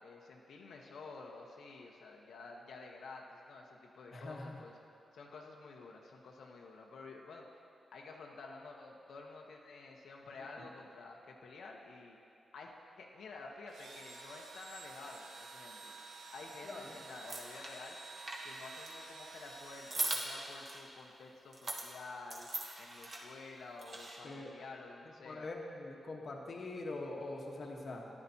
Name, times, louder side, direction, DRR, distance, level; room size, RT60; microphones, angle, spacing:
voice 1, 0.0-4.8 5.1-7.5 7.9-12.2 12.5-15.9 16.3-18.0 18.4-22.5 22.8-25.5, left 3 dB, 85° left, -1 dB, 0.9 m, -51 dB
voice 2, 4.1-4.6 16.6-16.9 24.2-24.5 25.2-28.1, left 2 dB, 50° left, 0 dB, 1.1 m, -43 dB
Engine / Drill, 13.7-21.0, right 3 dB, 75° right, 1.0 m, -51 dB
sound 1, 17.2-17.7 18.1-18.9 19.9-20.8 21.5-21.9 22.3-23.2 23.8-24.2, right 2 dB, 40° right, 1.3 m, -40 dB
14.5 x 11.0 x 2.8 m, 2.6 s
wide cardioid pair, 135°, 0 cm